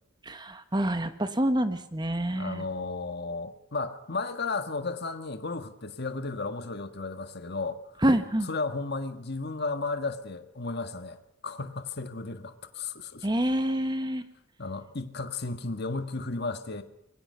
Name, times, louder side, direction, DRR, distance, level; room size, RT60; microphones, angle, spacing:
voice 1, 0.3-2.6 8.0-8.5 13.2-14.2, right 1 dB, 20° right, 1.2 m, -27 dB
voice 2, 2.3-7.8 8.4-11.2 11.4-13.3 14.6-16.8, left 3 dB, 50° left, 1.6 m, -34 dB
26.0 x 22.5 x 5.7 m
head